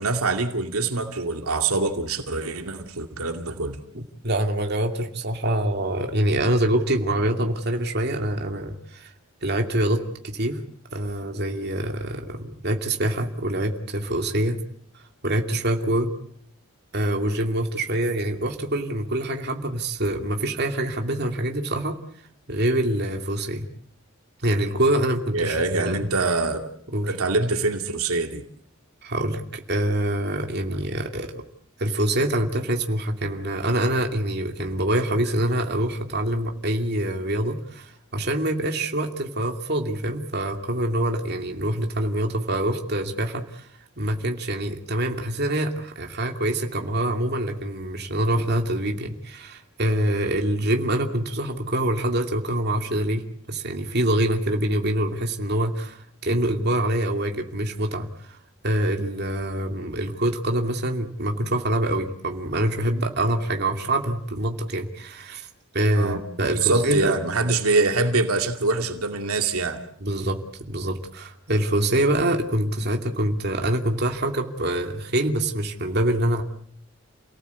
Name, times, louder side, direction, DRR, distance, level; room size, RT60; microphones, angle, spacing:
voice 1, 0.0-3.8 25.3-26.7 27.0-28.4 30.7-30.8 65.9-69.8, right 3 dB, 85° right, 6 dB, 2.4 m, -24 dB
voice 2, 3.9-9.1 9.4-10.6 10.9-14.6 15.2-16.1 16.9-22.0 22.5-23.6 24.4-26.1 26.9-27.1 29.0-31.4 31.8-43.7 44.0-58.4 58.6-65.5 65.7-67.2 70.0-76.4, right 1 dB, 50° right, 3 dB, 2.6 m, -25 dB
29.5 x 18.5 x 8.4 m, 0.66 s
head